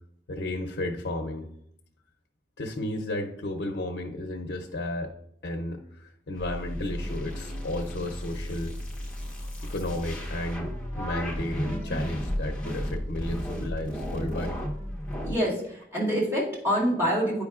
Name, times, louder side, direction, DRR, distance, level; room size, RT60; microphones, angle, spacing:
voice 1, 0.3-1.5 2.6-5.1 5.4-8.8 9.7-14.6, left 1 dB, 75° left, 3 dB, 0.7 m, -33 dB
sound 1, 6.4-15.4, equal, 5° left, 0.9 m, -33 dB
voice 2, 15.2-17.4, equal, 15° right, -7 dB, 2.0 m, -26 dB
9.6 x 5.0 x 2.4 m, 0.73 s
head